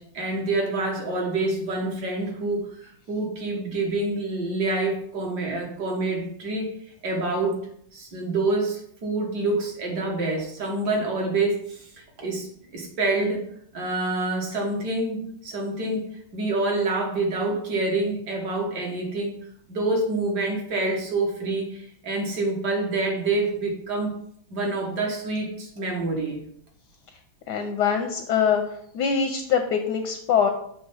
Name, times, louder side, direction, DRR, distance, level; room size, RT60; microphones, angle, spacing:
voice 1, 0.0-2.7 3.1-6.7 7.0-7.6 7.9-11.9 12.2-12.5 12.7-13.4 13.7-16.0 16.3-19.4 19.7-24.1 24.5-26.5, right 2 dB, 55° right, 0 dB, 1.9 m, -27 dB
voice 2, 27.5-28.6 28.9-30.5, left 7 dB, 70° left, 6 dB, 1.0 m, -23 dB
7.1 x 3.3 x 5.5 m, 0.69 s
omnidirectional pair, 2.3 m